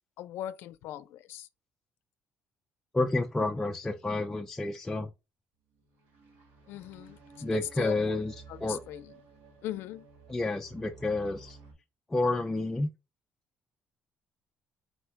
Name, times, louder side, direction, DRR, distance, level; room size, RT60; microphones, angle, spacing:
voice 1, 0.2-1.5 6.7-7.5 7.8-8.2 8.5-9.1 9.6-10.1, left 13 dB, 80° left, 0.4 m, -40 dB
voice 2, 2.9-5.1 7.4-8.3 8.6-8.8 10.3-11.6 12.1-12.9, left 2 dB, 10° left, 0.3 m, -30 dB
sound 1, 5.7-11.7, right 5 dB, 85° right, 2.0 m, -53 dB
4.2 x 2.1 x 4.4 m
cardioid pair, 170°, 4 cm